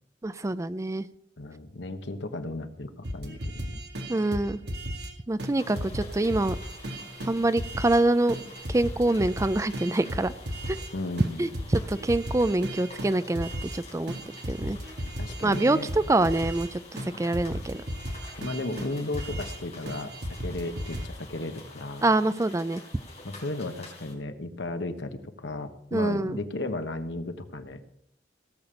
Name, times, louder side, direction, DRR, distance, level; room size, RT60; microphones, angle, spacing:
voice 1, 0.2-1.1 4.1-4.6 5.3-6.6 7.3-8.4 8.7-10.3 10.7-10.8 11.4-14.1 14.5-14.8 15.4-17.8 22.0-22.8 25.9-26.4, right 2 dB, 15° right, 14 dB, 0.4 m, -25 dB
voice 2, 1.4-3.8 5.7-6.0 10.9-11.5 15.2-15.9 18.4-22.0 23.2-27.8, left 2 dB, 75° left, 8 dB, 1.3 m, -35 dB
sound 1, 3.0-5.1 5.4-5.5 5.8-8.0 8.3-10.9 11.2-13.8 14.1-16.7 17.0-17.1 17.3-19.6 19.9-21.1, equal, 60° right, 2.0 m, -35 dB
sound 2, 5.5-24.1, left 3 dB, 35° left, 4.1 m, -48 dB
17.5 x 6.9 x 7.0 m, 0.72 s
head